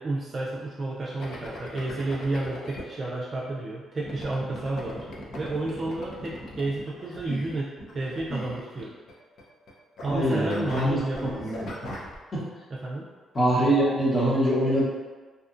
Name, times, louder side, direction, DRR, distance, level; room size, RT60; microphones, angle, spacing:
voice 1, 0.0-5.1 5.4-8.9 10.0-11.5 12.7-13.1, right 2 dB, 40° right, -5 dB, 0.4 m, -31 dB
sound 1, 1.2-2.8 4.0-9.1 9.4-9.7 10.0-12.1, left 1 dB, 60° left, 0.5 m, -38 dB
voice 2, 10.0-11.7 12.3-12.4 13.3-14.8, right 1 dB, 35° left, -7 dB, 0.9 m, -24 dB
2.7 x 2.4 x 2.5 m, 1.4 s
cardioid pair, 90°, 0 cm